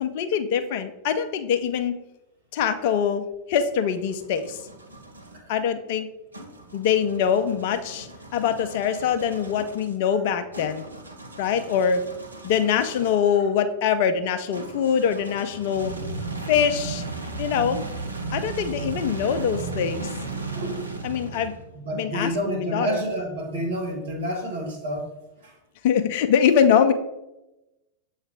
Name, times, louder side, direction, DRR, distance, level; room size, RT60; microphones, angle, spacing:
voice 1, 0.0-1.9 2.5-4.6 5.5-6.1 6.7-10.8 11.4-12.0 12.4-15.9 16.5-17.0 17.4-17.8 18.3-20.1 21.0-21.5 21.9-23.0 25.8-26.9, left 8 dB, 50° left, 9 dB, 0.6 m, -23 dB
sound 1, 3.6-5.4 6.3-13.3 14.5-21.8, right 3 dB, 85° right, 0.8 m, -36 dB
voice 2, 20.5-20.8 21.7-25.1 25.4-25.5, right 1 dB, 65° right, 2 dB, 1.7 m, -29 dB
7.6 x 3.2 x 4.6 m, 0.95 s
figure-of-eight pair, 90°, 0 cm